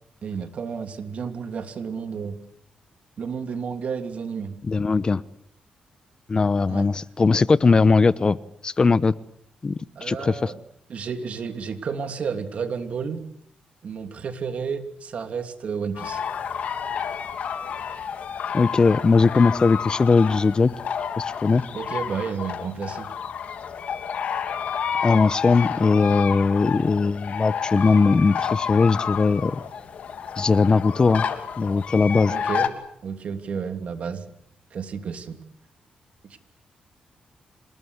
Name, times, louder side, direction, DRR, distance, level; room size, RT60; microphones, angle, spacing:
voice 1, 0.2-2.4 3.2-4.6 6.7-6.9 10.0-10.6 10.9-13.2 13.8-16.2 21.7-23.1 32.3-32.7 33.0-34.3 34.7-35.4 36.3-36.4, right 6 dB, 60° right, 7 dB, 3.1 m, -31 dB
voice 2, 4.6-5.2 6.3-8.4 8.6-9.1 9.6-9.7 10.0-10.5 18.5-20.7 21.2-21.6 25.0-29.6 30.4-31.2 31.6-32.3, left 4 dB, 35° left, 16 dB, 0.9 m, -19 dB
sound 1, 15.9-32.7, left 7 dB, 70° left, 2.7 m, -30 dB
27.0 x 20.5 x 8.2 m, 0.72 s
cardioid pair, 85°, 3 cm